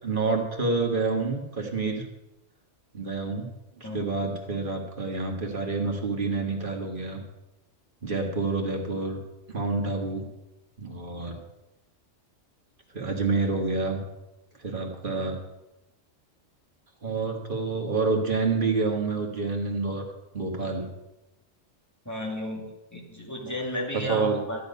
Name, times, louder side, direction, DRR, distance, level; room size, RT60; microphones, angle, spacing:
voice 1, 0.0-2.0 2.9-3.5 3.8-7.2 8.0-9.2 9.5-10.2 10.8-11.4 12.9-14.0 14.6-15.4 17.0-20.0 20.3-20.9 23.4-23.5 23.9-24.4, right 3 dB, 45° right, 2 dB, 1.9 m, -28 dB
voice 2, 22.0-24.6, equal, 15° left, -2 dB, 2.6 m, -33 dB
13.0 x 9.0 x 5.5 m, 0.97 s
omnidirectional pair, 1.3 m